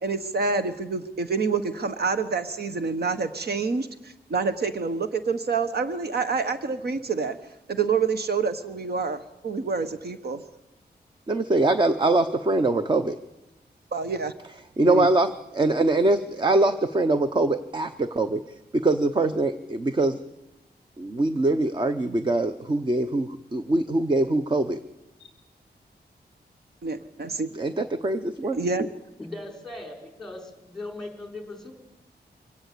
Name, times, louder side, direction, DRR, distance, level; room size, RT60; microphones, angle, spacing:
voice 1, 0.0-7.4 7.7-10.4 13.9-14.3 14.8-15.1 26.8-27.5 28.5-28.9, right 4 dB, 70° right, 10 dB, 1.3 m, -27 dB
voice 2, 11.3-13.2 14.8-18.4 18.7-20.2 21.0-24.8 27.5-28.6, right 2 dB, 25° right, 10 dB, 0.9 m, -23 dB
voice 3, 29.2-31.7, left 2 dB, ahead, 4 dB, 4.6 m, -39 dB
24.0 x 17.5 x 8.5 m, 0.95 s
wide cardioid pair, 170°, 17 cm